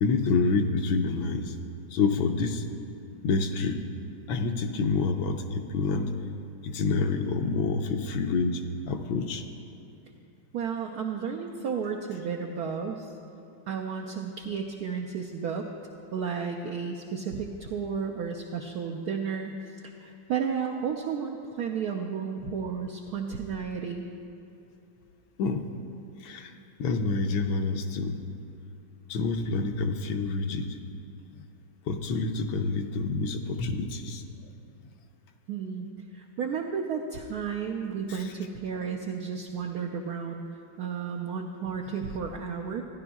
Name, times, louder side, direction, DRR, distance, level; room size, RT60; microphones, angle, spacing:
voice 1, 0.0-1.6 1.9-2.6 3.2-3.8 4.3-6.1 6.6-9.4 25.4-25.6 26.2-28.2 29.1-30.7 31.3-31.4 31.9-34.2 38.1-38.3, left 4 dB, 80° left, 6 dB, 1.4 m, -28 dB
voice 2, 10.5-13.1 13.7-15.7 16.1-19.6 20.0-24.1 35.5-35.9 36.1-42.8, right 6 dB, 85° right, 1 dB, 0.8 m, -33 dB
15.0 x 10.5 x 2.3 m, 2.7 s
omnidirectional pair, 2.2 m